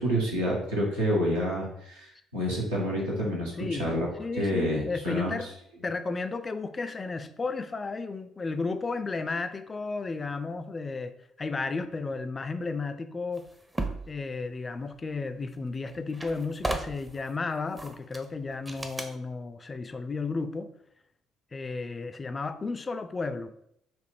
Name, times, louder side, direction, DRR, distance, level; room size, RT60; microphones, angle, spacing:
voice 1, 0.0-4.1 4.4-5.3, equal, 85° right, 1.1 m, -28 dB
voice 2, 3.6-3.9 4.2-5.5 5.8-13.5 14.1-20.7 21.5-23.5, left 3 dB, 30° left, 0.4 m, -33 dB
sound 1, 13.4-14.1 15.5-15.6 15.9-17.2 17.8-18.3 18.7-19.1, right 2 dB, 15° right, 0.6 m, -34 dB
5.9 x 2.6 x 3.3 m
figure-of-eight pair, 50°, 0 cm